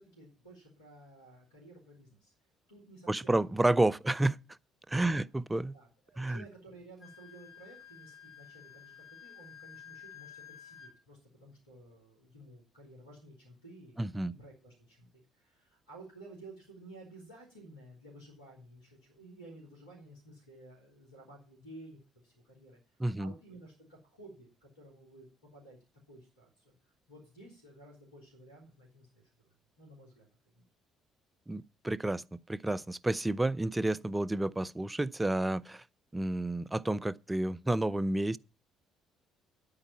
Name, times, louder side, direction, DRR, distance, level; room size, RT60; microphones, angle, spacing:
voice 1, 0.0-2.3 2.7-3.3 4.9-5.2 5.7-25.3 25.5-25.8 26.1-29.3 29.8-30.3 30.5-30.6, right 2 dB, 85° left, 3.3 m, -54 dB
voice 2, 3.1-4.4 4.9-5.7 6.2-6.4 14.0-14.3 23.0-23.3 31.5-32.2 32.5-35.8 36.1-38.4, right 2 dB, 15° right, 0.6 m, -30 dB
Wind instrument woodwind instrument, 7.0-10.9, left 9 dB, 25° left, 4.2 m, -52 dB
10.0 x 8.8 x 5.5 m
figure-of-eight pair, 50°, 0 cm